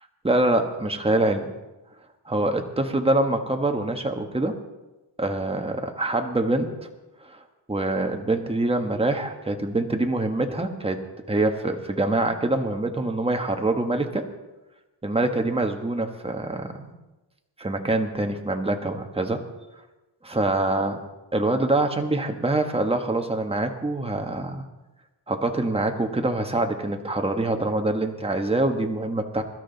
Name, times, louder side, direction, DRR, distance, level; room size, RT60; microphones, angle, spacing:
voice 1, 0.2-1.5 2.3-4.5 5.2-6.9 7.2-7.4 7.7-11.0 11.3-14.2 15.0-16.9 17.6-19.6 20.2-21.0 21.3-24.6 25.3-29.4, right 2 dB, 15° right, 4 dB, 1.3 m, -25 dB
22.5 x 12.5 x 4.0 m, 1.1 s
wide cardioid pair, 130°, 43 cm